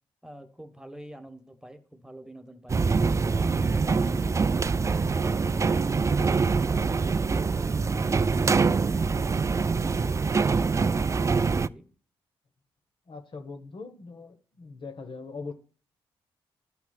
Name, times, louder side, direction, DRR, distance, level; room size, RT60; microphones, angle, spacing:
voice 1, 0.2-2.8 3.3-6.9 7.5-11.9, equal, 5° right, 1.3 m, -45 dB
sound 1, 2.7-11.7, right 4 dB, 30° right, 0.3 m, -24 dB
voice 2, 13.1-15.5, left 4 dB, 50° left, 1.2 m, -41 dB
13.0 x 5.9 x 2.4 m
supercardioid pair, 55°, 11 cm